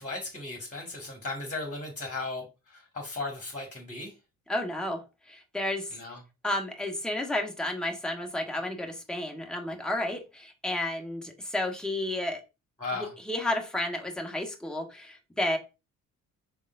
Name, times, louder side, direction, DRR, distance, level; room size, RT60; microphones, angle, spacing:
voice 1, 0.0-4.1 5.9-6.2 12.8-13.1, left 3 dB, 20° left, 1.8 m, -36 dB
voice 2, 4.5-5.0 5.3-5.9 6.4-12.4 12.9-15.6, left 1 dB, ahead, 1.3 m, -32 dB
5.2 x 3.6 x 2.6 m
hypercardioid pair, 45°, 41 cm